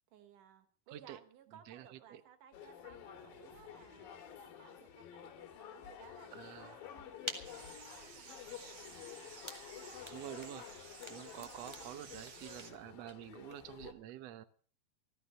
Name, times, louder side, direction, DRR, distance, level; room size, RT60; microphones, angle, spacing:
voice 1, 0.1-10.7, right 9 dB, 65° right, 9 dB, 2.9 m, -61 dB
sound 1, 2.5-13.9, left 9 dB, 70° left, 3.3 m, -51 dB
voice 2, 6.3-6.8 10.1-10.7 11.1-14.4, right 12 dB, 85° right, 11 dB, 1.4 m, -48 dB
sound 2, 6.8-13.9, right 1 dB, 25° right, 0.5 m, -51 dB
sound 3, 7.4-12.7, right 6 dB, 50° right, 2.0 m, -54 dB
15.0 x 14.0 x 5.7 m, 0.43 s
omnidirectional pair, 4.3 m